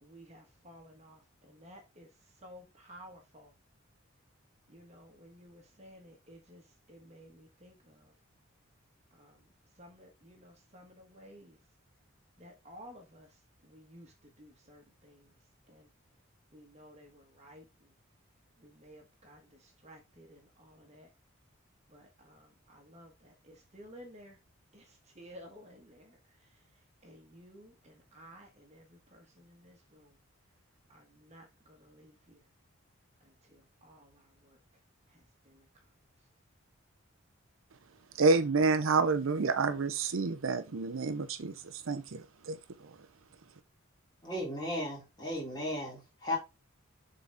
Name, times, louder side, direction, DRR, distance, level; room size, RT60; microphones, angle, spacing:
voice 1, 0.0-2.1 2.4-3.5 4.7-6.6 6.9-8.1 9.2-9.4 9.8-11.6 12.4-13.3 13.7-14.1 14.4-15.2 15.7-15.9 16.5-17.6 18.6-19.4 19.8-21.1 21.9-24.4 24.7-24.8 25.1-26.2 27.0-30.1 30.9-32.4 33.5-34.6 35.5-35.6, equal, 30° right, 1.4 m, -54 dB
voice 2, 38.2-42.9, right 4 dB, 70° right, 0.6 m, -29 dB
voice 3, 44.2-46.4, left 1 dB, 20° left, 3.2 m, -35 dB
7.1 x 4.0 x 3.5 m
head